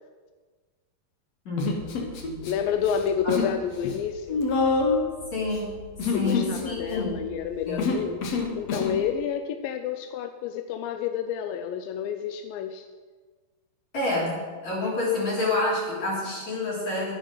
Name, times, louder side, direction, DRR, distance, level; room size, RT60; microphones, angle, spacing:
voice 1, 1.5-2.5 3.2-3.4 5.3-5.7 6.1-7.2 7.7-8.0 13.9-17.1, left 2 dB, 45° left, -5 dB, 4.6 m, -28 dB
Human voice, 1.6-2.5 2.8-3.6 3.8-9.0, left 4 dB, 60° left, 1.8 m, -27 dB
voice 2, 2.4-4.4 6.1-8.2 8.5-12.9, left 8 dB, 80° left, 7 dB, 2.1 m, -29 dB
11.5 x 10.0 x 5.6 m, 1.4 s
omnidirectional pair, 4.7 m